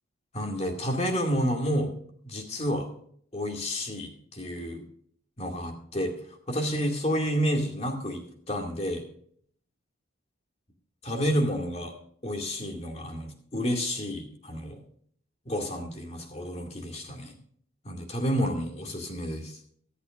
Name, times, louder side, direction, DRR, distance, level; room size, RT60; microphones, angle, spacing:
voice 1, 0.3-1.9 2.2-2.9 3.3-4.8 5.4-6.2 6.5-9.0 11.0-12.0 12.2-14.7 15.5-17.3 17.8-19.6, equal, 30° left, 3 dB, 2.2 m, -30 dB
24.0 x 8.3 x 2.5 m, 0.62 s
head